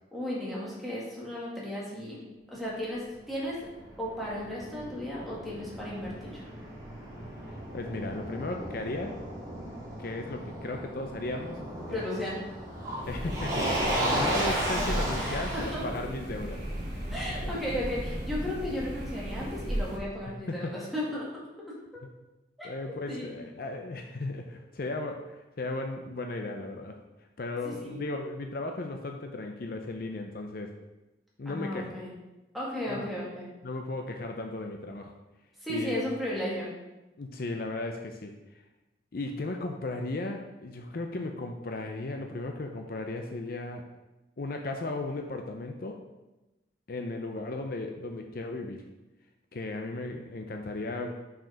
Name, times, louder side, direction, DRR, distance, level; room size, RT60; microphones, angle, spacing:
voice 1, 0.1-2.2 2.5-3.6 4.0-6.4 11.9-12.4 15.2-15.8 17.1-21.3 22.6-23.4 27.6-28.1 31.5-32.1 32.5-33.5 35.6-36.7, left 1 dB, ahead, -7 dB, 2.0 m, -35 dB
Motor vehicle (road), 3.3-18.3, right 1 dB, 20° right, 2.0 m, -35 dB
voice 2, 7.2-9.1 10.0-11.6 11.9-12.1 13.1-16.6 17.4-17.5 20.3-20.7 22.6-27.0 27.4-30.8 31.4-32.0 32.9-33.1 33.6-35.1 35.7-36.0 37.2-38.3 39.1-43.8 44.4-46.0 46.9-48.8 49.5-51.2, left 2 dB, 55° left, 3 dB, 0.6 m, -36 dB
sound 1, 13.0-20.0, right 1 dB, 45° right, 2.1 m, -36 dB
6.1 x 4.9 x 5.0 m, 1.0 s
head